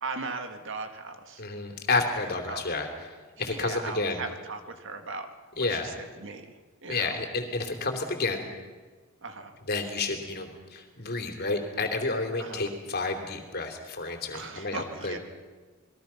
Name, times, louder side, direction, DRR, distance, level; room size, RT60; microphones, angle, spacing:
voice 1, 0.0-1.4 2.2-2.7 3.4-5.3 5.6-6.5 6.8-7.2 9.2-9.6 12.4-12.7 14.3-15.2, right 3 dB, 60° right, 6 dB, 2.0 m, -38 dB
voice 2, 1.4-2.9 3.4-4.2 5.6-6.0 6.9-8.5 9.7-15.2, left 3 dB, 50° left, 4 dB, 3.2 m, -30 dB
28.0 x 21.5 x 5.9 m, 1.4 s
head